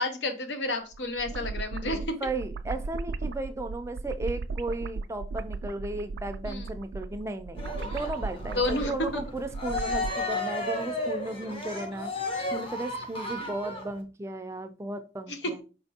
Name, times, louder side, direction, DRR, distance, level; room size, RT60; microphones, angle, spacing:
voice 1, 0.0-2.2 6.5-6.7 8.5-9.2 15.3-15.4, left 2 dB, 85° left, 0.8 m, -30 dB
sound 1, 0.9-10.2, right 3 dB, 90° right, 0.3 m, -36 dB
voice 2, 1.8-15.6, right 2 dB, 15° right, 0.4 m, -35 dB
Cheering, 7.6-14.0, left 2 dB, 30° left, 0.7 m, -33 dB
4.4 x 3.3 x 2.8 m
head